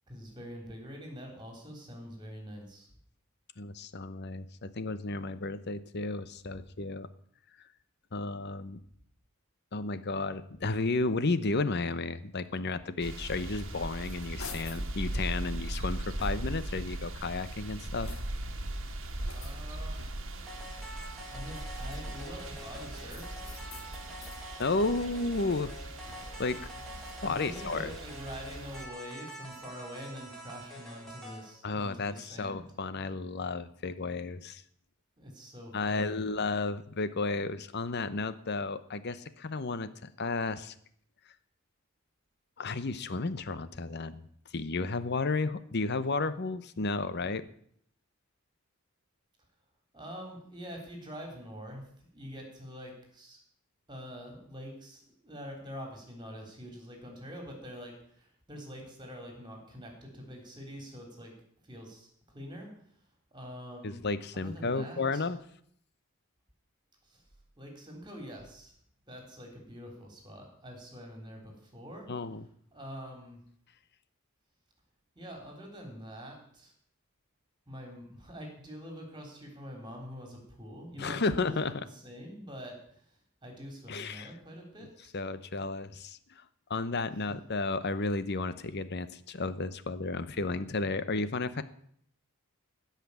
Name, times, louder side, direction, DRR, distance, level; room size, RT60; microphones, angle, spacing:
voice 1, 0.1-2.9 19.3-20.0 21.1-23.4 27.2-32.7 35.2-36.2 49.9-53.4 53.9-61.3 61.6-62.7 63.3-64.0 64.4-65.2 67.1-67.2 67.6-68.7 69.1-72.1 72.7-73.4 75.2-76.7 77.7-82.8 83.4-85.1 87.3-87.4, equal, 20° right, 2 dB, 3.6 m, -45 dB
voice 2, 3.6-7.1 8.1-8.8 9.7-18.1 24.6-25.7 26.4-26.7 27.2-27.9 31.6-34.6 35.7-40.7 42.6-44.2 44.5-47.5 63.8-65.4 72.1-72.5 81.0-81.7 83.9-84.3 84.8-84.9 85.1-86.4 86.7-91.6, left 3 dB, 50° left, 14 dB, 0.8 m, -33 dB
sound 1, 13.0-28.9, right 1 dB, 65° right, 1.6 m, -39 dB
sound 2, 13.8-14.9 15.5-16.8 17.3-18.6 19.2-20.5 21.4-22.4 23.1-24.5 24.9-26.5, left 4 dB, 70° left, 2.0 m, -50 dB
sound 3, 20.5-31.5, equal, ahead, 3.7 m, -47 dB
16.5 x 5.9 x 8.5 m, 0.65 s
head